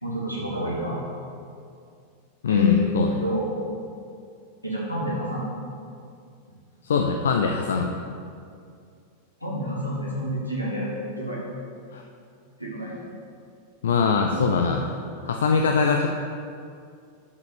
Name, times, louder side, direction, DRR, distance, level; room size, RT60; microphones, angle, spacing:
voice 1, 0.0-1.0 2.5-3.0 3.2-3.5 4.6-5.5 9.4-10.9 11.2-11.4 12.6-12.9 14.3-14.6, left 1 dB, 90° left, -6 dB, 2.6 m, -28 dB
voice 2, 2.4-3.2 6.8-7.9 11.9-12.0 13.8-14.8 15.2-16.1, left 5 dB, 65° left, 3 dB, 0.5 m, -22 dB
7.0 x 6.7 x 6.7 m, 2.4 s
figure-of-eight pair, 90°, 0 cm